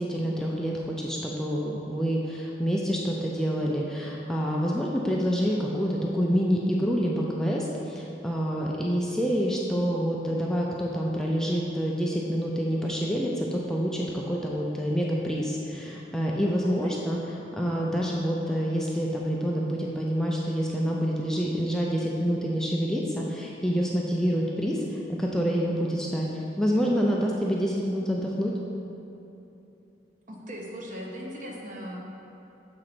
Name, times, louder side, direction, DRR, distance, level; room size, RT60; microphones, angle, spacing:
voice 1, 0.0-17.2 17.5-28.5, equal, 5° left, -3 dB, 0.4 m, -27 dB
voice 2, 16.6-17.0 30.3-32.0, equal, 45° right, -2 dB, 0.9 m, -39 dB
6.2 x 3.8 x 6.0 m, 2.9 s
head